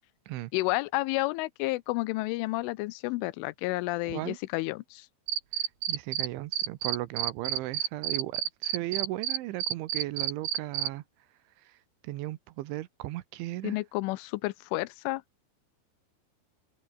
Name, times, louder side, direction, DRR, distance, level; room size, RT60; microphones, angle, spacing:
voice 1, 0.5-5.1 13.6-15.2, left 21 dB, 90° left, 3.3 m, -31 dB
Cricket, 5.3-6.3 6.5-10.9, right 12 dB, 65° right, 3.4 m, -29 dB
voice 2, 5.9-11.0 12.1-13.7, right 16 dB, 80° right, 3.4 m, -36 dB
open air
omnidirectional pair, 5.5 m